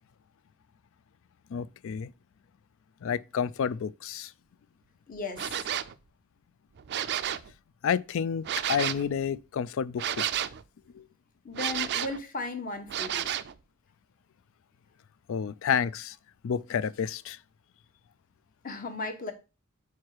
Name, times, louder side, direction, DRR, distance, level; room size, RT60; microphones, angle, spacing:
voice 1, 1.5-2.1 3.0-4.3 7.8-10.2 10.9-11.0 15.3-16.2 16.4-17.4, left 7 dB, 60° left, 0.3 m, -30 dB
voice 2, 5.1-5.7 11.4-13.3 18.6-19.3, left 3 dB, 40° left, 1.0 m, -36 dB
sound 1, 5.4-5.9 6.8-7.5 8.4-9.0 10.0-10.6 11.5-12.2 12.9-13.5, right 10 dB, 50° right, 0.4 m, -31 dB
4.7 x 4.6 x 4.5 m
head